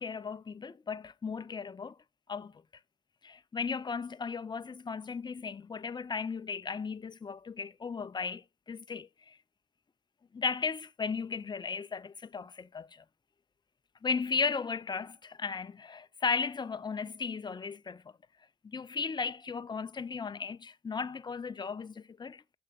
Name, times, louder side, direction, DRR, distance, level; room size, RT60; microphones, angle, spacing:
voice 1, 0.0-2.0 2.3-2.5 3.2-9.4 10.3-13.0 14.0-18.0 18.6-22.5, left 5 dB, 20° left, 0.5 m, -36 dB
9.0 x 6.9 x 2.3 m
cardioid pair, 90°, 20 cm